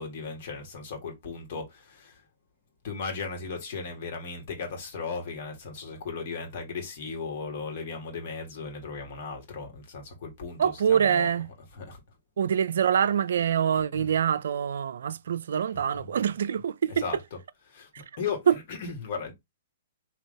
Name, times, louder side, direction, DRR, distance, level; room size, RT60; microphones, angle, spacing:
voice 1, 0.0-2.2 2.8-11.3 11.7-12.0 13.9-14.1 16.0-16.1 16.9-17.2 17.7-19.3, left 5 dB, 55° left, 1.7 m, -36 dB
voice 2, 10.6-11.5 12.4-16.9 18.5-18.6, right 8 dB, 70° right, 0.3 m, -25 dB
3.8 x 2.9 x 3.2 m
hypercardioid pair, 130°, 0 cm